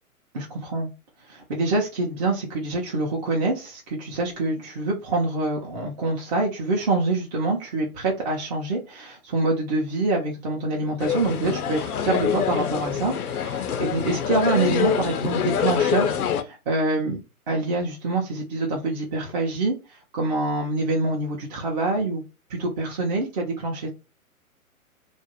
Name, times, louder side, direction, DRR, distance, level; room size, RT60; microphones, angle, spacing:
voice 1, 0.3-0.9 1.3-17.2 17.5-22.2 22.5-23.9, right 2 dB, 30° right, -2 dB, 0.6 m, -26 dB
sound 1, 11.0-16.4, left 8 dB, 80° left, 0.6 m, -25 dB
2.5 x 2.0 x 2.8 m, 0.27 s
hypercardioid pair, 130°, 43 cm